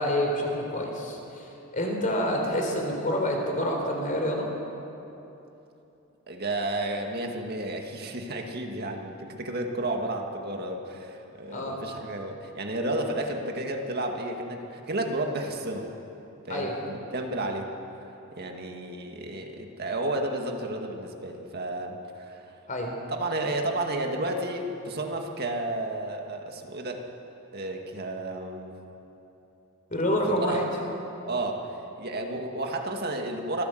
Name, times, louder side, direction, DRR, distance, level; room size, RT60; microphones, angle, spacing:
voice 1, 0.0-4.5 11.5-11.8 16.5-16.7 22.7-22.9 29.9-30.6, equal, 40° left, 1 dB, 4.0 m, -28 dB
voice 2, 6.3-15.9 16.5-17.7 17.9-18.1 18.4-22.6 23.1-27.0 27.5-28.7 30.3-30.6 31.3-33.6, right 2 dB, 50° right, 2 dB, 2.0 m, -32 dB
25.5 x 15.5 x 7.9 m, 3.0 s
head